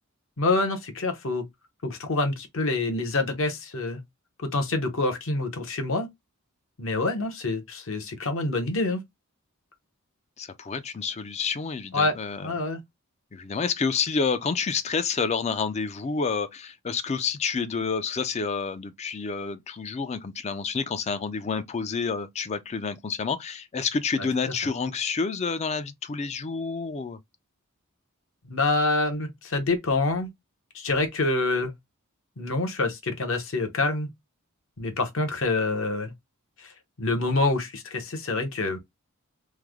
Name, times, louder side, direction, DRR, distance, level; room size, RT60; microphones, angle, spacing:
voice 1, 0.4-1.4 1.8-4.0 4.4-6.1 6.8-9.0 11.9-12.1 12.4-12.8 24.2-24.3 28.4-30.3 30.7-31.7 32.4-34.1 34.8-36.1 36.6-36.7 37.0-38.8, left 2 dB, 60° left, 0.8 m, -26 dB
voice 2, 10.4-12.5 13.3-27.2, left 5 dB, 30° left, 0.3 m, -29 dB
3.2 x 2.0 x 3.5 m
head